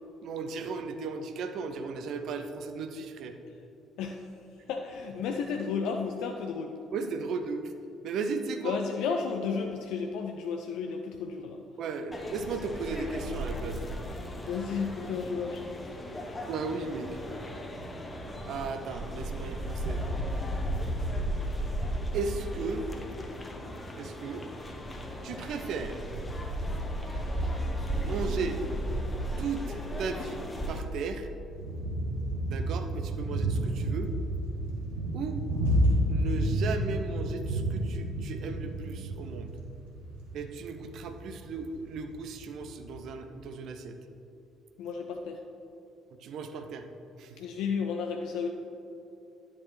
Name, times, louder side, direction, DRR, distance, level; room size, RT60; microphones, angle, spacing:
voice 1, 0.2-3.3 6.9-7.7 8.0-8.8 11.8-13.8 16.4-17.1 18.5-20.0 22.1-23.0 24.0-24.4 25.2-26.1 28.0-28.6 29.4-30.4 30.7-31.3 32.5-34.1 35.1-35.5 36.1-39.5 40.3-44.0 46.2-46.9 47.2-47.4, right 4 dB, 55° right, 7 dB, 0.6 m, -36 dB
voice 2, 4.0-4.3 4.7-6.7 8.6-11.6 14.5-15.9 44.8-45.4 47.4-48.5, left 5 dB, 60° left, 3 dB, 0.4 m, -32 dB
sound 1, 12.1-30.8, equal, 20° left, 1.0 m, -35 dB
sound 2, 31.5-43.0, right 1 dB, 70° right, 1.2 m, -30 dB
10.0 x 7.2 x 3.2 m, 3.0 s
figure-of-eight pair, 50°, 0 cm